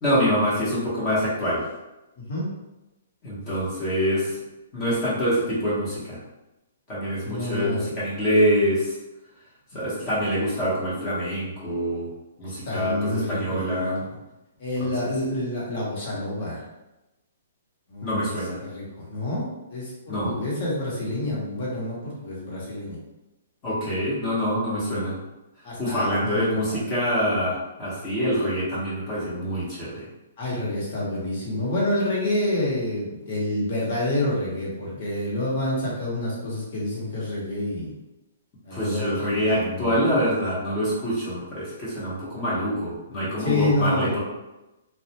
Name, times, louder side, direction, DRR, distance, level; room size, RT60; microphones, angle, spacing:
voice 1, 0.0-1.6 3.2-4.4 4.7-6.2 6.9-8.9 9.7-12.1 12.4-14.0 14.8-14.9 18.0-18.6 20.1-20.4 23.6-25.1 25.8-30.0 38.7-44.2, equal, 25° left, -8 dB, 0.9 m, -25 dB
voice 2, 2.2-2.5 7.2-7.9 12.4-14.1 14.6-16.7 17.9-18.3 18.6-23.0 25.6-26.8 30.4-37.9 38.6-40.0 43.2-44.2, left 1 dB, 45° left, -5 dB, 1.1 m, -28 dB
2.3 x 2.1 x 2.9 m, 0.99 s
hypercardioid pair, 155°, 0 cm